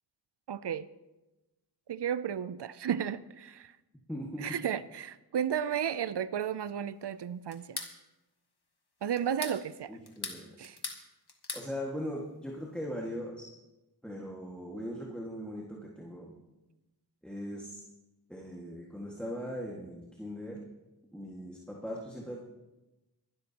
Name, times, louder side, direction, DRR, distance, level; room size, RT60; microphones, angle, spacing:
voice 1, 0.5-0.9 1.9-3.7 4.4-7.8 9.0-10.0 10.6-10.8, right 9 dB, 85° right, 0.5 m, -33 dB
voice 2, 4.1-4.6 9.9-10.5 11.5-13.5 14.0-16.4 17.2-17.8 18.3-20.6 21.1-22.4, equal, 5° left, 1.8 m, -39 dB
sound 1, 7.5-7.9 9.2-9.6 10.1-11.0 11.3-11.7, left 3 dB, 70° left, 1.6 m, -39 dB
22.5 x 12.5 x 2.9 m
wide cardioid pair, 40°, 39 cm